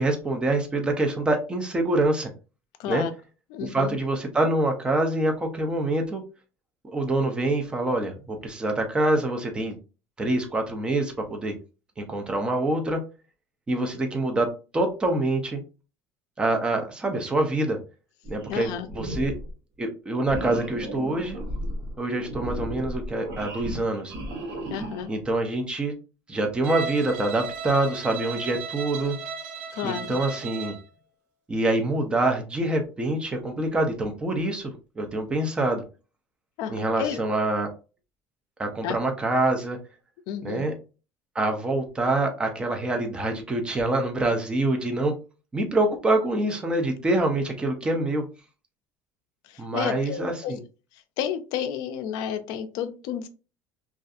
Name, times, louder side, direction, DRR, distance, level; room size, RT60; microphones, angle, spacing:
voice 1, 0.0-2.3 2.9-3.1 3.6-6.2 6.9-9.8 10.2-11.5 12.0-13.0 13.7-14.5 14.7-15.6 16.4-17.8 18.3-19.3 19.8-21.4 22.0-24.1 25.1-25.9 26.3-29.1 29.8-30.8 31.5-35.8 36.7-37.7 38.6-39.8 40.4-40.7 41.3-45.1 45.5-48.2 49.6-50.6, right 2 dB, 15° right, 4 dB, 0.5 m, -25 dB
voice 2, 2.8-3.1 3.5-4.0 18.5-18.9 24.7-25.1 29.7-30.1 36.6-37.2 38.8-39.0 40.3-40.7 49.5-50.5 51.2-53.3, left 9 dB, 60° left, 9 dB, 0.4 m, -31 dB
sound 1, 18.2-18.6 18.9-19.5 20.2-25.2, right 1 dB, 50° right, 1.0 m, -34 dB
Bowed string instrument, 26.6-30.9, right 5 dB, 75° right, 0.6 m, -35 dB
2.5 x 2.3 x 2.4 m, 0.33 s
cardioid pair, 165°, 7 cm